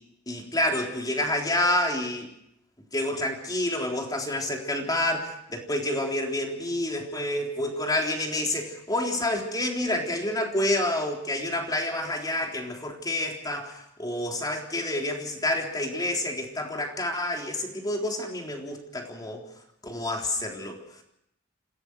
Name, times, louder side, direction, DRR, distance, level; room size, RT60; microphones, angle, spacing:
voice 1, 0.3-2.3 2.9-19.4 19.8-20.8, left 1 dB, 20° left, 1 dB, 3.7 m, -28 dB
27.0 x 17.0 x 6.3 m, 0.76 s
head